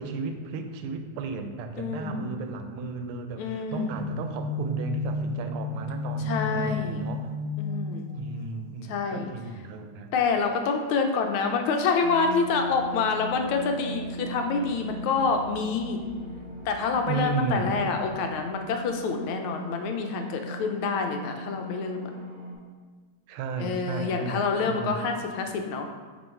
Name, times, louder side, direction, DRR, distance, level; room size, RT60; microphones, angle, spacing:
voice 1, 0.0-7.3 8.1-10.1 17.1-17.9 23.3-25.2, right 4 dB, 85° right, 7 dB, 1.5 m, -34 dB
voice 2, 1.8-2.3 3.4-3.9 6.3-7.0 7.6-8.1 8.9-9.3 10.1-16.0 16.6-22.1 23.6-25.9, left 5 dB, 80° left, 4 dB, 1.4 m, -27 dB
sound 1, 3.7-9.2, left 2 dB, 65° right, 1.2 m, -32 dB
sound 2, 12.0-22.5, right 2 dB, 40° right, 1.2 m, -39 dB
7.1 x 3.0 x 4.4 m, 1.5 s
omnidirectional pair, 2.4 m